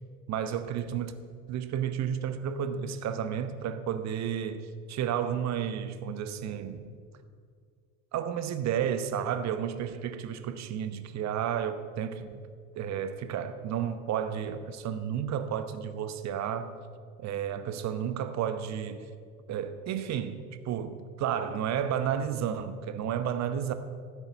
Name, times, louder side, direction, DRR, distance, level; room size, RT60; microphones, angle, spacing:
voice 1, 0.3-1.2 1.5-7.0 8.1-12.4 12.8-16.7 17.2-19.1 19.5-23.7, right 9 dB, 45° right, 11 dB, 1.0 m, -32 dB
13.0 x 9.7 x 6.9 m, 2.1 s
figure-of-eight pair, 55°, 40 cm